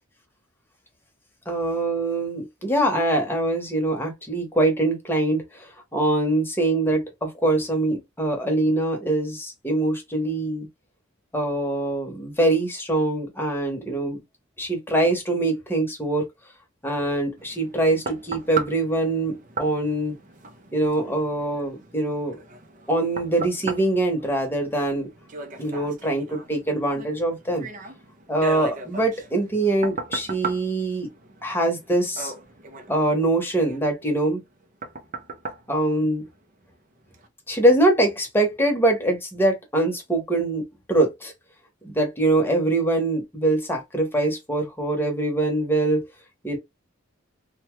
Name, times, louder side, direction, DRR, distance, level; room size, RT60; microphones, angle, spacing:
voice 1, 1.5-10.7 11.3-14.2 14.6-16.3 16.8-20.1 20.7-22.4 22.9-25.1 25.6-27.7 28.3-31.1 31.4-32.3 32.9-34.4 35.7-36.3 37.5-41.3 41.8-46.0 46.4-46.6, right 1 dB, 10° left, 0.9 m, -23 dB
sound 1, 17.4-36.6 37.1-37.3, right 3 dB, 40° right, 0.5 m, -38 dB
2.7 x 2.2 x 3.0 m
head